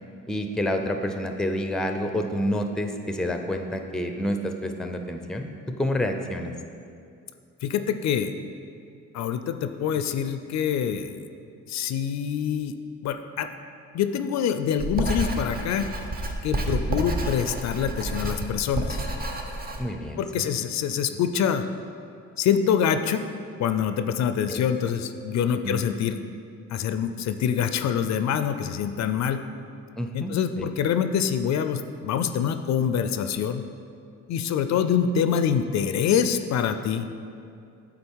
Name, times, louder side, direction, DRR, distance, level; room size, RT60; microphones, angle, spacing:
voice 1, 0.3-6.5 19.8-20.5 24.5-24.6 25.6-25.8 30.0-30.7, left 1 dB, ahead, 5 dB, 0.5 m, -29 dB
voice 2, 7.6-8.3 9.1-11.1 11.7-12.8 13.0-13.5 13.9-15.9 16.4-19.0 20.2-21.6 22.4-23.2 23.6-26.2 26.7-29.4 30.1-33.6 34.3-37.1, left 8 dB, 65° left, 9 dB, 0.4 m, -25 dB
Writing, 14.8-19.8, right 2 dB, 30° right, 0.8 m, -30 dB
8.6 x 3.8 x 4.6 m, 2.5 s
cardioid pair, 90°, 30 cm